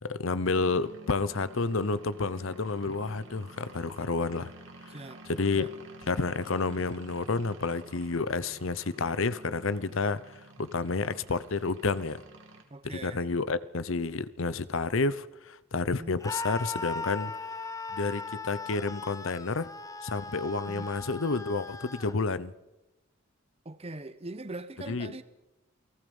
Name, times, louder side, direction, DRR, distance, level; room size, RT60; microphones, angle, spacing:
voice 1, 0.0-4.5 4.8-4.9 5.3-5.7 6.1-12.2 12.8-17.3 17.9-19.7 20.0-22.5 24.9-25.1, left 3 dB, 70° left, 0.8 m, -30 dB
sound 1, 0.5-12.6, right 1 dB, 60° right, 2.9 m, -50 dB
voice 2, 4.9-5.3 5.5-5.7 12.7-13.3 15.9-16.1 20.7-20.9 23.6-25.2, right 2 dB, 30° right, 0.9 m, -42 dB
Screaming, 16.2-22.2, left 3 dB, 15° left, 0.8 m, -38 dB
29.0 x 19.0 x 5.4 m
head